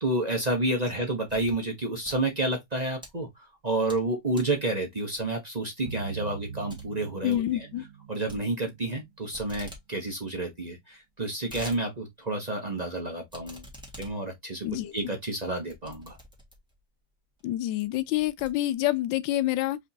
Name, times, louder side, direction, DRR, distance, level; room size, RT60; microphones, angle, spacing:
voice 1, 0.0-7.7 8.1-13.6 14.0-14.7 14.9-16.2, right 2 dB, 30° right, 0.9 m, -30 dB
sound 1, 1.3-1.6 1.9-3.1 3.6-4.1 4.3-4.6 5.2-5.5 5.9-6.0 6.3-6.4 6.7-6.8 7.1-7.4 8.3-9.0 9.3-9.8 10.2-10.3 10.4-10.5 11.1-11.8 12.2-12.3 13.3-16.8 17.4-17.5 17.8-19.0, equal, 5° right, 1.6 m, -47 dB
sound 2, 5.9-9.6, right 6 dB, 85° right, 1.4 m, -42 dB
voice 2, 7.2-7.8 14.6-14.9 17.4-19.8, left 14 dB, 90° left, 1.3 m, -27 dB
5.1 x 3.6 x 2.7 m
omnidirectional pair, 2.0 m